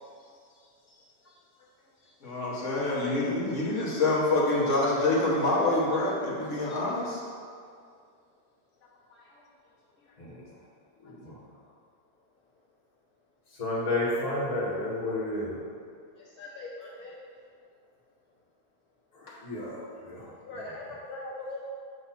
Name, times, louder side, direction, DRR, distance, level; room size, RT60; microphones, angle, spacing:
voice 1, 2.2-7.2, left 2 dB, 50° left, -5 dB, 1.3 m, -26 dB
voice 2, 11.0-11.4 13.6-15.6 19.1-20.3, left 2 dB, 25° left, -6 dB, 1.2 m, -31 dB
voice 3, 16.2-17.2 20.4-21.7, left 2 dB, 70° left, -4 dB, 1.1 m, -40 dB
7.9 x 2.6 x 5.7 m, 2.2 s
omnidirectional pair, 1.8 m